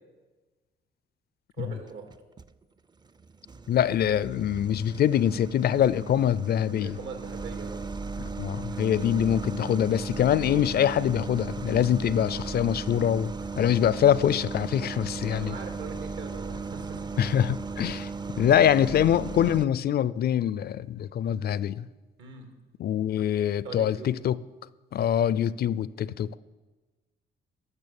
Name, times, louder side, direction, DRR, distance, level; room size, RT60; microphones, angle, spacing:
voice 1, 1.6-2.1 6.8-7.9 15.1-17.0 22.2-22.5 23.6-24.1, right 4 dB, 80° right, 2.4 m, -41 dB
sound 1, 1.9-2.5 3.1-19.7, right 4 dB, 20° right, 0.4 m, -36 dB
voice 2, 3.7-7.0 8.4-15.6 17.2-18.1 18.4-21.9 22.8-24.4 24.9-26.4, left 10 dB, 50° left, 0.4 m, -24 dB
12.5 x 6.4 x 7.1 m
cardioid pair, 90°, 20 cm